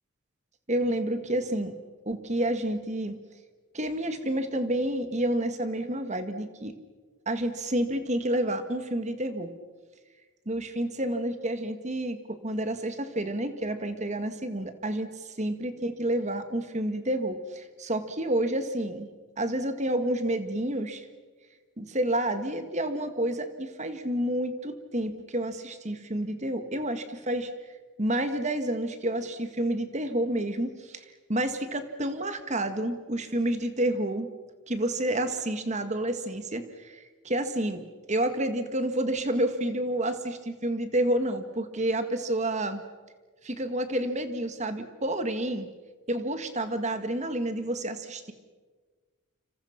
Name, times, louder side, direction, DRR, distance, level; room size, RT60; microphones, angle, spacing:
voice 1, 0.7-1.8 2.1-3.2 3.7-6.8 7.3-9.5 10.5-15.1 15.4-19.1 19.4-21.1 21.8-27.5 28.0-34.3 34.7-42.8 43.4-45.7 46.1-48.3, right 1 dB, 30° right, 9 dB, 1.8 m, -29 dB
29.5 x 26.5 x 6.0 m, 1.4 s
head